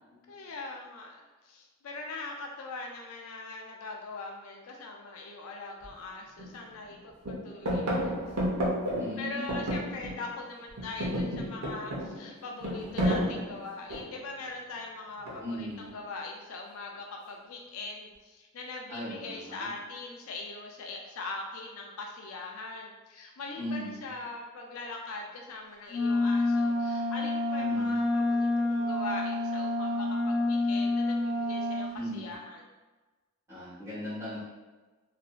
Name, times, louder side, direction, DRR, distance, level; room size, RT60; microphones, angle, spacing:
voice 1, 0.3-8.2 9.2-32.7, left 3 dB, 70° left, 1 dB, 0.4 m, -41 dB
sound 1, 5.8-5.9 6.4-6.9 7.2-10.4 10.7-14.3 15.3-15.7, equal, 90° right, 0.7 m, -32 dB
voice 2, 9.0-9.7 15.4-15.9 18.9-19.7 23.6-24.1 27.6-28.0 31.9-32.3 33.5-34.4, left 1 dB, 15° right, -11 dB, 1.3 m, -38 dB
Wind instrument woodwind instrument, 25.9-31.9, left 2 dB, 30° left, 0.9 m, -28 dB
2.8 x 2.5 x 2.4 m, 1.2 s
head